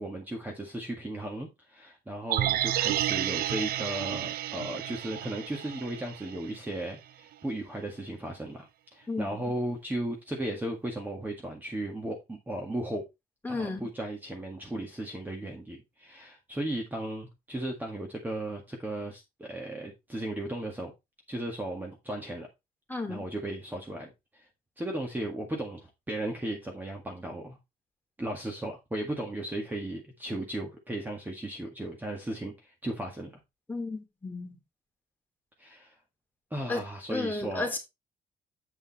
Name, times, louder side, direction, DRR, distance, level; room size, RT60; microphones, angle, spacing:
voice 1, 0.0-13.1 13.5-20.9 21.3-22.5 23.1-24.5 24.8-27.6 28.2-33.3 35.6-36.0 36.5-37.7, right 1 dB, 10° right, 1.9 m, -36 dB
sound 1, 2.3-6.5 6.8-6.9, right 12 dB, 85° right, 0.5 m, -31 dB
voice 2, 13.4-13.9 22.9-23.2 33.7-34.6 36.7-36.8 37.1-37.8, left 3 dB, 10° left, 2.9 m, -33 dB
8.4 x 5.1 x 4.2 m
cardioid pair, 130°, 15 cm